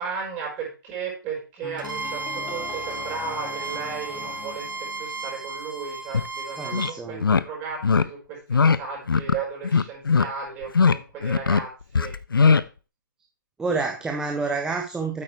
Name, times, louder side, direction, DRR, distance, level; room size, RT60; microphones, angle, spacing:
voice 1, 0.0-11.7 12.0-12.1, right 5 dB, 20° right, -2 dB, 5.0 m, -35 dB
sound 1, 1.6-5.7, left 8 dB, 15° left, 1.0 m, -41 dB
Bowed string instrument, 1.8-7.0, right 3 dB, 70° right, 1.8 m, -34 dB
sound 2, 6.1-6.3 6.7-6.9 7.2-7.4 7.8-8.0 8.5-8.8 9.1-9.4 9.6-10.2 10.6-11.0 11.2-11.6 11.9-12.6, left 5 dB, 80° left, 0.6 m, -19 dB
voice 2, 6.6-7.3 13.6-15.2, right 4 dB, 5° right, 1 dB, 0.7 m, -28 dB
8.8 x 8.1 x 3.2 m, 0.32 s
figure-of-eight pair, 140°, 11 cm